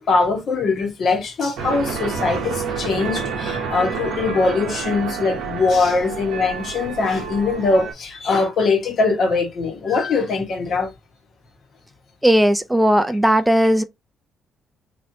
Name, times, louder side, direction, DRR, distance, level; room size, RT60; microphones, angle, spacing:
voice 1, 0.0-10.9, left 4 dB, 60° left, 1.1 m, -21 dB
sound 1, 1.6-7.9, right 6 dB, 70° right, 0.8 m, -29 dB
voice 2, 12.2-13.8, equal, 10° right, 0.4 m, -16 dB
3.0 x 2.6 x 2.7 m
hypercardioid pair, 55°, 0 cm